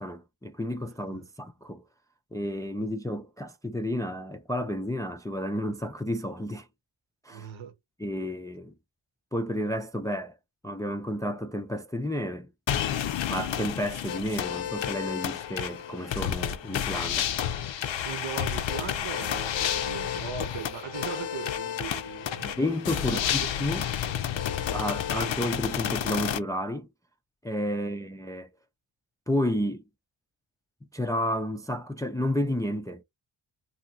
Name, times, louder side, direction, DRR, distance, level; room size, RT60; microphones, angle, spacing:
voice 1, 0.0-1.8 2.3-6.7 7.2-7.5 8.0-8.7 9.3-10.3 10.6-12.5 13.3-17.3 22.4-23.9 24.7-26.9 27.4-28.5 29.3-29.8 30.9-33.0, equal, 5° left, 0.4 m, -31 dB
voice 2, 7.3-7.7 18.0-22.6 23.0-23.3 24.7-24.8 25.1-25.3 27.7-28.0, right 9 dB, 65° right, 0.9 m, -39 dB
sound 1, 12.7-26.4, left 10 dB, 65° left, 0.6 m, -30 dB
2.7 x 2.6 x 2.7 m
cardioid pair, 60°, 50 cm